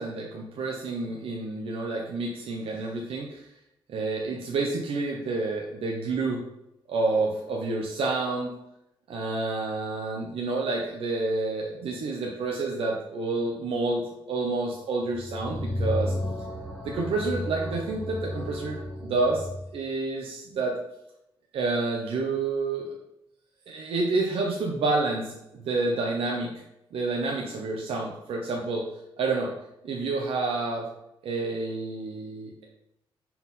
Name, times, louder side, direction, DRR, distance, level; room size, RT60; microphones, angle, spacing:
voice 1, 0.0-3.5 3.9-6.4 6.9-8.5 9.1-16.1 16.8-19.5 19.7-20.8 21.5-22.9 23.7-26.5 26.9-28.8 29.2-29.5 29.8-30.9 31.2-32.6, right 3 dB, 85° right, -1 dB, 0.8 m, -29 dB
sound 1, 15.1-19.7, left 1 dB, 10° left, 2.1 m, -33 dB
5.5 x 4.3 x 4.2 m, 0.84 s
wide cardioid pair, 130°, 9 cm